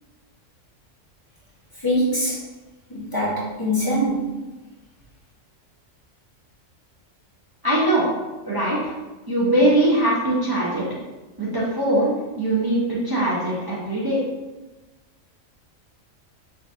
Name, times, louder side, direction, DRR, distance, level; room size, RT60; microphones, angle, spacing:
voice 1, 1.8-2.4 2.9-4.4, equal, 20° left, -8 dB, 1.0 m, -23 dB
voice 2, 7.6-8.0 8.4-8.9 9.3-10.8 11.4-14.2, right 1 dB, 20° right, -8 dB, 0.6 m, -21 dB
5.8 x 2.8 x 2.6 m, 1.1 s
omnidirectional pair, 1.4 m